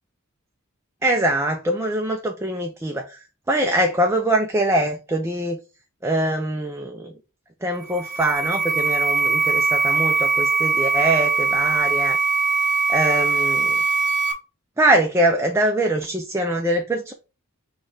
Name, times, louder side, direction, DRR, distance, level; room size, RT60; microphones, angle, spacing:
voice 1, 1.0-3.2 3.5-5.6 6.0-7.1 7.6-12.2 12.9-13.8 14.8-17.1, right 1 dB, 10° right, 0.4 m, -23 dB
sound 1, 7.8-14.3, right 4 dB, 40° right, 0.9 m, -21 dB
4.3 x 2.3 x 4.7 m
head